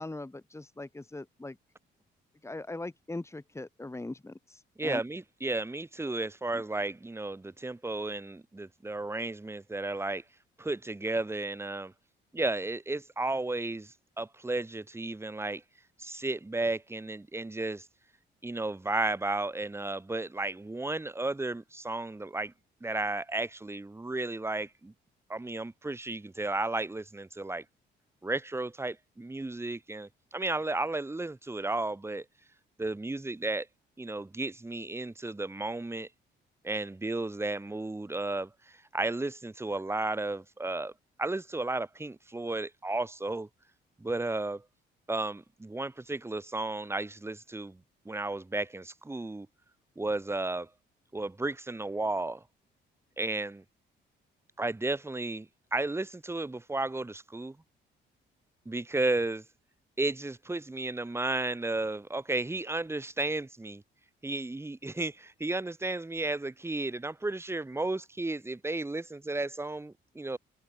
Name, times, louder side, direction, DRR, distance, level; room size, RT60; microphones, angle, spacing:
voice 1, 0.0-1.6 2.4-5.0 6.5-6.6, left 2 dB, 15° left, 4.5 m, -40 dB
voice 2, 4.8-10.2 10.6-11.9 12.3-15.6 16.0-17.9 18.4-22.5 22.8-24.9 25.3-27.6 28.2-32.2 32.8-33.7 34.0-36.1 36.6-40.9 41.2-43.5 44.0-44.6 45.1-47.8 48.0-49.5 50.0-50.7 51.1-52.4 53.2-53.6 54.6-57.6 58.6-59.4 60.0-63.8 64.2-70.4, right 2 dB, 10° right, 1.5 m, -33 dB
cardioid pair, 90°, 20 cm